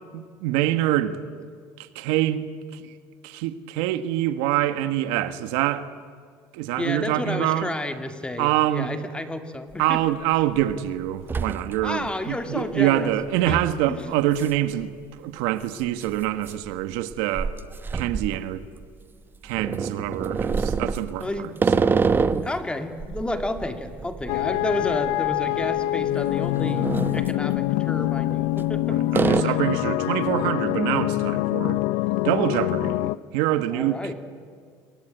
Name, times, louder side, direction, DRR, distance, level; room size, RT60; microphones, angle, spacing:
voice 1, 0.1-1.1 1.8-2.9 3.2-5.9 6.5-7.7 8.4-8.9 9.8-14.9 15.2-17.5 17.9-18.6 19.4-21.5 21.7-22.0 28.9-31.8 32.2-34.1, right 13 dB, 85° right, 1.5 m, -25 dB
voice 2, 6.8-10.0 11.8-13.1 13.5-13.6 13.9-14.0 21.2-22.0 22.4-26.9 27.1-29.6 30.0-30.1 33.7-34.1, left 2 dB, 10° left, 2.3 m, -31 dB
sound 1, 9.7-9.8 10.3-10.7 11.0-12.1 12.4-12.5 13.5-13.7 14.4-14.5 14.8-14.9 15.9-19.0 19.5-22.6 23.0-25.4 25.6-25.8 26.3-27.3 28.2-28.8 29.1-29.4, right 5 dB, 25° right, 1.1 m, -26 dB
sound 2, 24.3-33.2, left 16 dB, 80° left, 0.7 m, -25 dB
27.0 x 23.0 x 9.1 m
cardioid pair, 120°, 9 cm